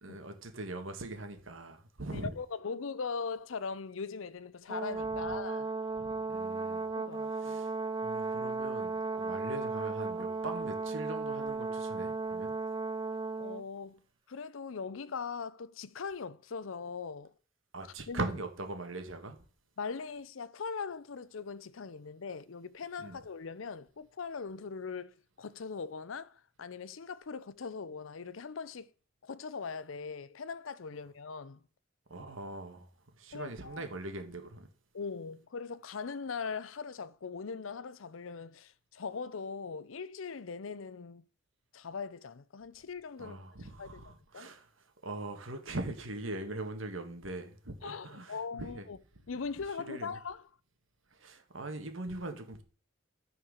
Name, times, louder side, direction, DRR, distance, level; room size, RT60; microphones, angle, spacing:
voice 1, 0.0-2.3 5.2-5.3 6.0-6.9 7.3-7.7 8.0-12.6 17.7-19.4 23.0-23.2 32.1-32.9 33.2-34.7 43.2-48.9 49.9-50.2 51.1-52.6, right 2 dB, 80° right, 1.7 m, -41 dB
voice 2, 2.1-5.7 7.0-7.6 13.4-14.0 14.3-17.3 18.1-18.2 19.8-28.9 29.2-31.6 33.3-33.9 34.9-41.2 41.7-43.4 43.8-44.5 47.8-49.0 49.3-50.4, left 5 dB, 90° left, 0.6 m, -40 dB
Brass instrument, 4.7-13.6, right 4 dB, 25° right, 0.6 m, -35 dB
13.0 x 4.7 x 6.5 m
head